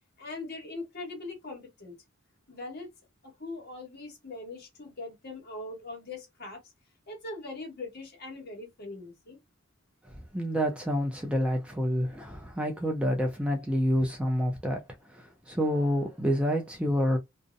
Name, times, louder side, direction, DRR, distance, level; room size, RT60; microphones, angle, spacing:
voice 1, 0.2-2.0 2.5-2.9 3.2-6.7 7.1-9.4, left 2 dB, 50° left, 1.3 m, -41 dB
voice 2, 10.1-17.2, equal, 5° right, 0.4 m, -28 dB
2.5 x 2.0 x 2.5 m
head